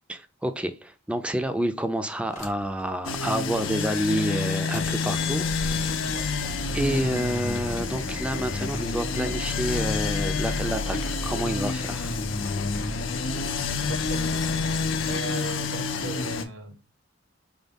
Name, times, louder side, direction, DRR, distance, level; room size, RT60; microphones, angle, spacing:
voice 1, 0.1-6.1 6.7-12.1, right 1 dB, 5° right, 0.3 m, -29 dB
sound 1, 2.3-2.8 3.2-3.3 4.5-15.2, left 1 dB, 40° left, 0.9 m, -36 dB
sound 2, 3.0-16.4, left 5 dB, 80° left, 0.5 m, -29 dB
voice 2, 6.0-6.3 13.7-14.4 15.0-16.8, right 3 dB, 70° right, 0.7 m, -38 dB
5.0 x 2.3 x 3.4 m
head